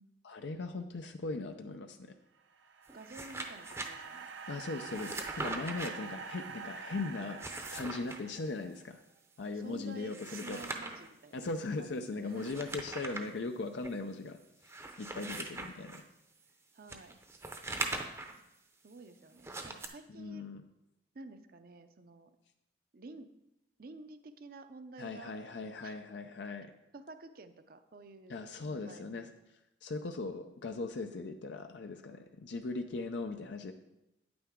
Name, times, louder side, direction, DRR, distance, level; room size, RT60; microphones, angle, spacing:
voice 1, 0.2-2.1 4.5-7.4 7.7-9.0 9.4-10.6 11.3-14.4 15.0-16.0 20.1-20.6 25.0-26.7 28.3-29.3 29.8-33.7, left 3 dB, 75° left, 6 dB, 0.5 m, -39 dB
sound 1, 2.4-8.8, right 5 dB, 90° right, 0.8 m, -46 dB
sound 2, 2.9-3.9 4.9-5.9 7.2-8.2 10.0-11.1 12.3-13.3 13.8-13.9 14.6-16.0 16.9-18.4 19.4-19.9, right 2 dB, 15° right, 0.6 m, -41 dB
voice 2, 2.9-4.3 9.5-11.4 11.8-12.6 15.2-15.7 16.7-17.1 18.1-18.4 18.8-20.5 21.1-22.3 22.9-23.3 23.8-25.3 25.8-26.0 26.9-28.4 28.7-29.3, right 3 dB, 55° right, 10 dB, 0.6 m, -51 dB
9.4 x 8.6 x 3.7 m, 0.90 s
head